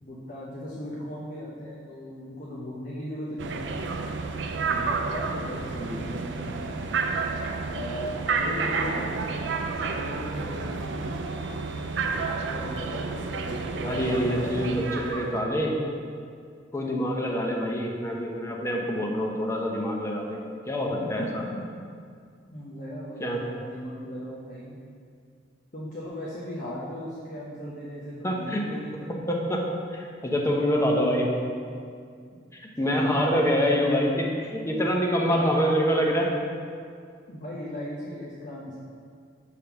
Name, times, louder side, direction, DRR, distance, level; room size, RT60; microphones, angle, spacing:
voice 1, 0.0-3.6 4.7-6.9 7.7-11.2 12.5-15.0 16.8-17.1 21.2-21.8 22.5-24.8 25.7-29.1 30.6-31.0 32.8-33.7 35.2-35.6 37.3-38.8, equal, 45° left, -6 dB, 0.9 m, -37 dB
sound 1, 3.4-15.4, right 4 dB, 75° right, 0.4 m, -30 dB
voice 2, 13.8-15.7 16.7-21.4 23.2-23.4 28.2-28.7 29.3-29.7 29.9-31.3 32.5-36.3, equal, 15° left, -1 dB, 0.8 m, -26 dB
6.5 x 3.6 x 5.7 m, 2.2 s
head